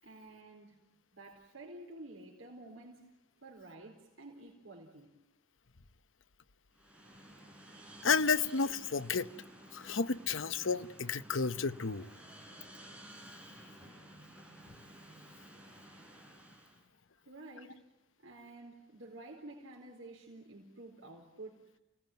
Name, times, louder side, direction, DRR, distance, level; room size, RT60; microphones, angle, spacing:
voice 1, 0.0-0.8 1.1-3.1 3.4-5.1 17.3-17.9 18.2-21.7, right 2 dB, 75° right, 4.3 m, -51 dB
sound 1, 6.7-16.9, right 1 dB, 5° right, 5.1 m, -54 dB
voice 2, 8.0-9.3 9.7-12.1, left 5 dB, 75° left, 0.9 m, -31 dB
30.0 x 18.5 x 9.2 m
head